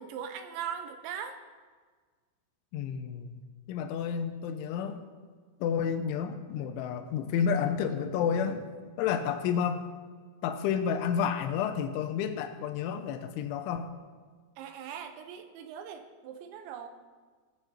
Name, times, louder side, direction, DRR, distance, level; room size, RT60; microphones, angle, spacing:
voice 1, 0.0-1.4 14.6-16.9, right 8 dB, 80° right, 7 dB, 3.0 m, -40 dB
voice 2, 2.7-3.4 3.7-5.0 5.6-8.7 9.0-9.8 10.4-13.9, left 7 dB, 85° left, 8 dB, 3.2 m, -30 dB
20.5 x 8.1 x 4.4 m, 1.5 s
omnidirectional pair, 5.5 m